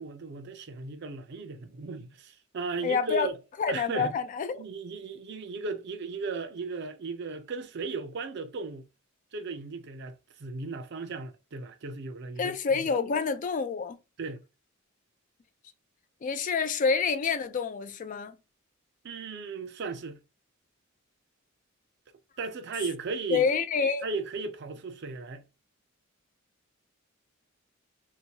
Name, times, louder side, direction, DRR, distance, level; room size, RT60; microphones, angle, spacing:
voice 1, 0.0-3.4 3.7-4.1 4.5-8.9 9.3-12.8 14.2-14.4 19.0-20.2 22.4-23.5 24.0-25.4, right 3 dB, 55° right, 0.5 m, -36 dB
voice 2, 2.8-3.3 3.6-4.6 12.4-14.0 16.2-18.4 23.3-24.1, left 5 dB, 40° left, 0.3 m, -27 dB
2.8 x 2.2 x 2.8 m
head